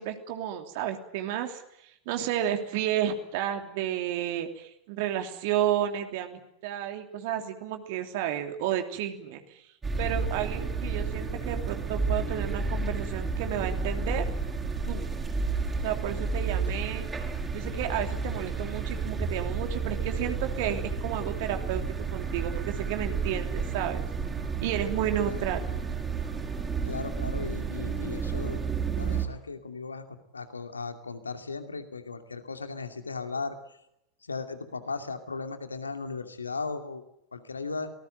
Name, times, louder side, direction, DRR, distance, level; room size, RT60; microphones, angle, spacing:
voice 1, 0.0-9.6 10.0-14.2 14.9-15.1 15.8-17.1 17.5-24.0 24.6-25.6, right 10 dB, 50° right, 6 dB, 2.9 m, -32 dB
sound 1, 9.8-29.3, right 4 dB, 15° right, 5.2 m, -31 dB
voice 2, 26.8-28.6 28.9-33.5 34.3-37.0 37.3-37.9, left 4 dB, 75° left, 7 dB, 2.6 m, -36 dB
26.5 x 19.5 x 9.2 m, 0.80 s
figure-of-eight pair, 90°, 0 cm